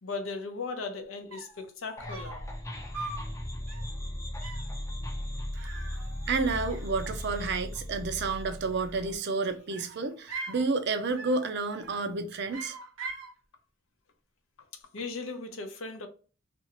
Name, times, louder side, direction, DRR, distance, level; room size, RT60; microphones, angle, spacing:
voice 1, 0.0-2.4 14.9-16.1, left 4 dB, 75° left, 0.6 m, -37 dB
sound 1, 1.0-1.1 1.3-1.6 2.1-2.5 2.9-3.3 3.7-4.0 4.4-4.7 5.5-6.4 6.7-7.4 8.6-9.2 9.7-10.6 11.1-11.5 11.8-12.1 12.5-13.3, right 3 dB, 75° right, 1.0 m, -42 dB
sound 2, 2.0-9.1, left 1 dB, 15° left, 0.5 m, -37 dB
voice 2, 5.6-6.0 6.3-12.8, right 4 dB, 55° right, 0.5 m, -30 dB
2.6 x 2.4 x 2.9 m
head